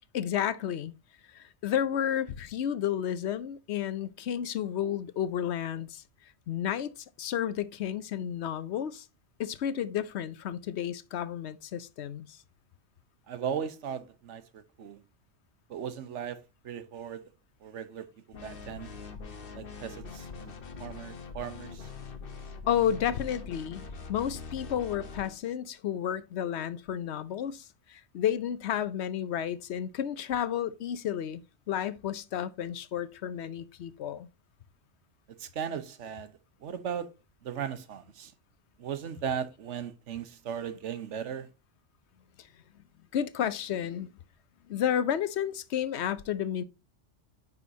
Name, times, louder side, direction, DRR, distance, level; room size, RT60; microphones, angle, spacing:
voice 1, 0.1-0.9 1.3-6.0 6.5-6.9 7.2-9.1 9.4-12.4 22.7-31.4 31.7-34.3 43.1-44.1 44.7-46.6, left 9 dB, 70° left, 0.9 m, -31 dB
voice 2, 13.3-15.0 15.7-16.4 16.6-17.2 17.6-18.9 19.5-20.5 20.8-21.9 35.4-36.3 36.6-37.1 37.4-38.3 38.8-41.5, right 8 dB, 85° right, 1.2 m, -37 dB
sound 1, 18.3-25.4, left 4 dB, 55° left, 1.2 m, -43 dB
9.2 x 5.5 x 2.7 m
omnidirectional pair, 1.2 m